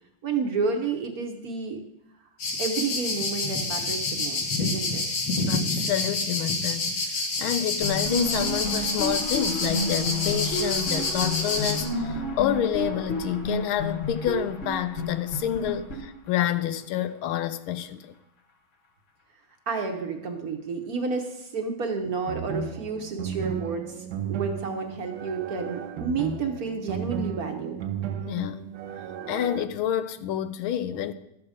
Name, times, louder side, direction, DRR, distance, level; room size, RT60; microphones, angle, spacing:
voice 1, 0.2-1.8 2.6-5.0 19.7-27.8, right 4 dB, 55° right, 1.2 m, -30 dB
sound 1, 2.4-11.8, left 3 dB, 60° left, 2.0 m, -28 dB
voice 2, 5.5-18.1 28.3-28.6 29.3-31.1, left 11 dB, 90° left, 1.5 m, -28 dB
sound 2, 7.8-16.6, left 1 dB, 40° left, 1.5 m, -31 dB
sound 3, 22.3-29.7, right 7 dB, 70° right, 1.4 m, -34 dB
12.5 x 7.7 x 5.0 m
omnidirectional pair, 2.3 m